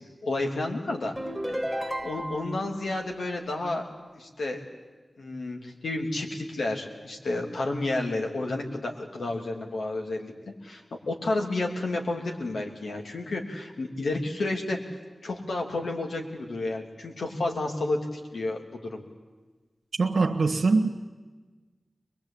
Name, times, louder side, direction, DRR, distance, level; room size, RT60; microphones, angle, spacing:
voice 1, 0.2-1.1 1.5-1.6 2.0-3.9 4.2-4.6 5.2-10.3 10.6-14.8 15.2-19.0, left 2 dB, 85° left, 2 dB, 3.1 m, -31 dB
sound 1, 1.2-2.6, equal, ahead, 2.1 m, -32 dB
voice 2, 20.0-20.9, right 3 dB, 85° right, 1 dB, 1.4 m, -22 dB
22.5 x 22.0 x 8.8 m, 1.3 s
wide cardioid pair, 65°, 0 cm